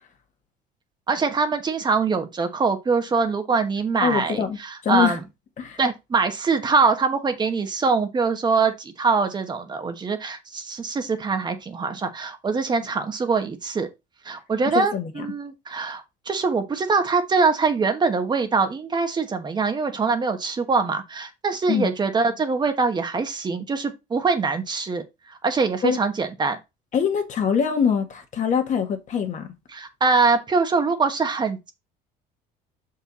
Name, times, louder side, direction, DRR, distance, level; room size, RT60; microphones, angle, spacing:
voice 1, 1.1-5.2 5.8-13.9 14.2-26.6 29.7-31.7, right 4 dB, 25° right, 1.1 m, -23 dB
voice 2, 4.0-5.2 5.6-5.8 14.7-15.3 21.7-21.9 25.8-26.0 26.9-29.5, left 7 dB, 45° left, 1.7 m, -24 dB
6.6 x 4.7 x 4.1 m
cardioid pair, 130°, 17 cm